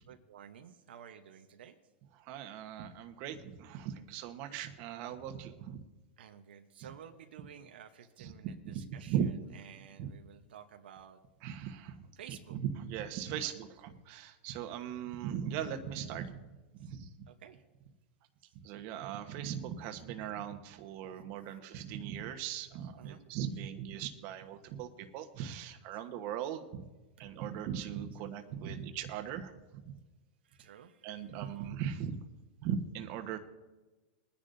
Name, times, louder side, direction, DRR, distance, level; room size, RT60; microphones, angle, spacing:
voice 1, 0.1-1.8 6.2-11.2 12.2-12.6 13.4-13.5 16.8-16.9 17.3-17.6 18.4-18.6 23.0-23.3 28.6-28.8 30.4-31.5, right 8 dB, 85° right, 5 dB, 1.0 m, -53 dB
voice 2, 2.2-5.8 8.2-8.3 8.6-9.3 10.0-10.1 11.4-12.1 12.5-16.4 16.7-17.1 18.6-24.9 25.1-26.9 27.2-30.0 31.0-32.2 32.6-33.4, right 9 dB, 50° right, 6 dB, 1.2 m, -39 dB
21.5 x 10.0 x 2.7 m, 1.2 s
hypercardioid pair, 130°, 5 cm